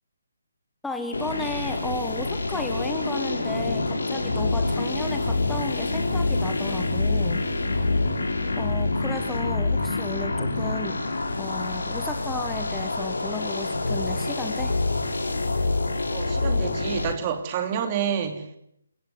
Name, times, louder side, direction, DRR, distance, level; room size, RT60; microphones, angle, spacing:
voice 1, 0.8-7.4 8.6-11.0 11.3-14.7, left 2 dB, 5° left, 5 dB, 1.4 m, -34 dB
sound 1, 1.1-17.1, left 2 dB, 65° left, 4.7 m, -26 dB
voice 2, 16.1-18.4, right 8 dB, 25° right, 6 dB, 3.2 m, -28 dB
27.5 x 16.5 x 9.8 m, 0.75 s
figure-of-eight pair, 145°, 0 cm